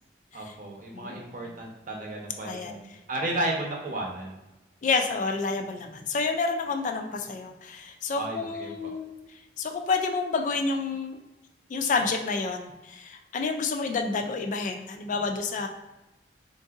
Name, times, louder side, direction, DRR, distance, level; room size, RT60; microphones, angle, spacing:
voice 1, 0.3-4.4 8.2-8.9, right 1 dB, 50° right, 0 dB, 0.7 m, -33 dB
voice 2, 0.9-1.5 2.4-2.7 4.8-9.1 9.6-11.2 11.7-15.7, left 4 dB, 45° left, 4 dB, 0.3 m, -29 dB
3.6 x 2.6 x 2.4 m, 1.0 s
head